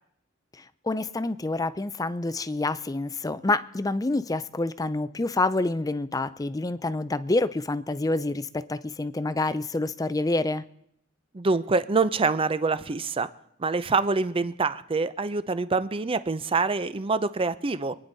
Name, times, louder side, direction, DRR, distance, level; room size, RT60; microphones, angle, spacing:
voice 1, 0.8-10.6, left 2 dB, 20° left, 0.5 m, -27 dB
voice 2, 11.3-13.3 13.6-17.9, right 4 dB, 25° right, 0.6 m, -25 dB
26.5 x 9.9 x 4.0 m
head